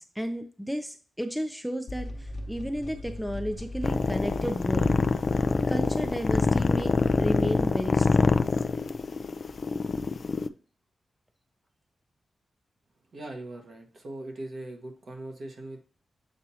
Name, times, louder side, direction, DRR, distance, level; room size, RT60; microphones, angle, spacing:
voice 1, 0.0-5.1 5.7-6.9 7.2-8.5, equal, ahead, 7 dB, 0.6 m, -33 dB
sound 1, 1.9-8.5, left 1 dB, 70° left, 1.1 m, -38 dB
sound 2, 3.8-10.5, left 4 dB, 50° left, 0.4 m, -25 dB
voice 2, 13.1-15.8, right 2 dB, 55° right, 2 dB, 1.4 m, -40 dB
7.6 x 4.4 x 2.8 m, 0.41 s
wide cardioid pair, 105°, 0 cm